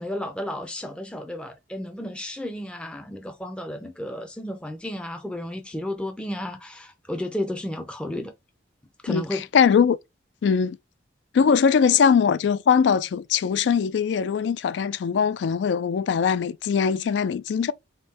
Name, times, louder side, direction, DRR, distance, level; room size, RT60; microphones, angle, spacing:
voice 1, 0.0-8.3 9.0-9.5, left 1 dB, 5° left, 0.4 m, -32 dB
voice 2, 9.1-10.0 10.4-10.8 11.3-17.7, left 6 dB, 70° left, 0.3 m, -21 dB
3.7 x 2.6 x 4.1 m
head